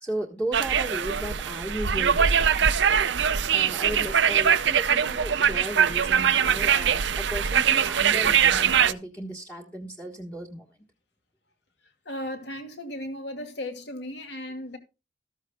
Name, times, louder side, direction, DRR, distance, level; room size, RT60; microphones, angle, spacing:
voice 1, 0.0-10.8, right 1 dB, 10° left, 1.4 m, -36 dB
sound 1, 0.5-8.9, right 7 dB, 70° right, 0.6 m, -22 dB
voice 2, 12.0-14.8, left 1 dB, 60° left, 2.6 m, -36 dB
14.0 x 13.5 x 2.2 m
head